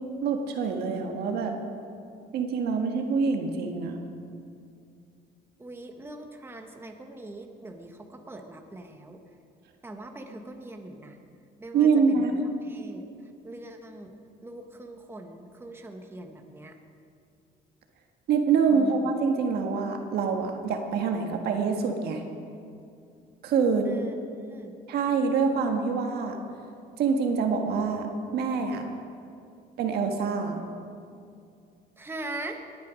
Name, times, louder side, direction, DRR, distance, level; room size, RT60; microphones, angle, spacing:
voice 1, 0.2-1.5 2.3-4.0 11.7-12.4 18.3-22.2 23.4-23.9 24.9-26.4 27.0-28.1 28.3-28.8 29.8-30.5, right 5 dB, 70° right, 4 dB, 1.6 m, -25 dB
voice 2, 5.6-9.2 9.8-11.2 11.6-13.1 13.4-14.1 14.4-16.8 18.7-19.2 23.8-24.7 32.0-32.6, right 2 dB, 15° right, 4 dB, 1.3 m, -42 dB
20.0 x 9.5 x 5.2 m, 2.5 s
cardioid pair, 110°, 17 cm